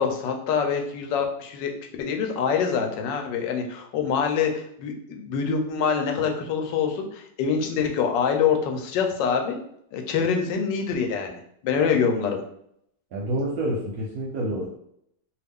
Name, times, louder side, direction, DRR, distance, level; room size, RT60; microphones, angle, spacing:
voice 1, 0.0-1.7 2.0-9.6 9.9-12.4, left 6 dB, 80° left, 4 dB, 1.3 m, -25 dB
voice 2, 13.1-14.7, right 1 dB, 70° right, -2 dB, 0.9 m, -28 dB
2.9 x 2.3 x 3.5 m, 0.72 s
omnidirectional pair, 1.9 m